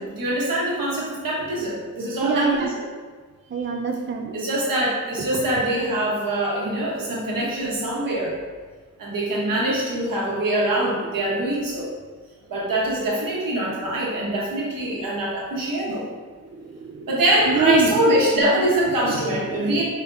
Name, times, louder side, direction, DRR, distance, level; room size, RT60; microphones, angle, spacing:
voice 1, 0.0-2.7 4.3-8.3 9.0-11.9 12.5-16.0 17.1-19.8, right 1 dB, 90° right, -5 dB, 1.2 m, -23 dB
voice 2, 2.2-2.7 3.5-4.4 5.3-5.4 16.4-17.1 17.5-18.1 19.1-19.8, right 4 dB, 35° right, 3 dB, 0.4 m, -25 dB
5.1 x 3.4 x 2.7 m, 1.5 s
wide cardioid pair, 110°, 32 cm